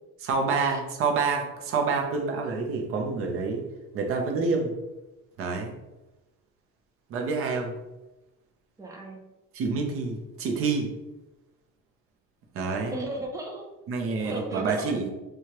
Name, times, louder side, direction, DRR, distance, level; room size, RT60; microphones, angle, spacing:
voice 1, 0.2-3.7 3.9-4.7 5.4-5.7 7.1-7.7 9.5-10.9 12.5-13.0 13.9-15.1, right 4 dB, 50° right, 2 dB, 0.7 m, -27 dB
voice 2, 8.8-9.2 12.7-13.7 14.2-14.9, right 1 dB, 10° right, 1 dB, 0.5 m, -36 dB
4.7 x 2.4 x 2.9 m, 1.0 s
cardioid pair, 155°, 30 cm